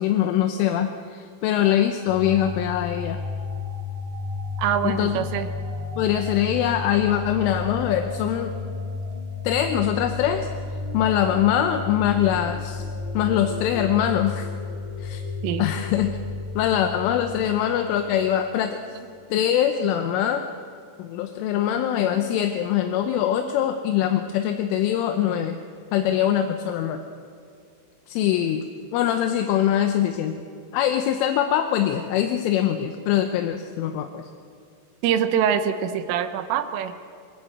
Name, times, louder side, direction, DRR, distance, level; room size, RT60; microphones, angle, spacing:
voice 1, 0.0-3.2 4.8-5.2 6.0-8.5 9.4-10.5 10.9-12.8 13.1-14.5 15.0-15.2 15.6-16.1 16.6-18.8 19.3-20.4 21.0-25.6 25.9-27.0 28.1-28.6 28.9-30.4 30.7-34.2, left 10 dB, 80° left, 6 dB, 3.4 m, -23 dB
sound 1, 2.1-18.4, left 4 dB, 35° right, 7.4 m, -32 dB
voice 2, 4.6-5.5 15.4-15.7 35.0-36.9, right 8 dB, 80° right, 9 dB, 3.6 m, -24 dB
25.5 x 21.5 x 8.0 m, 2.3 s
omnidirectional pair, 5.7 m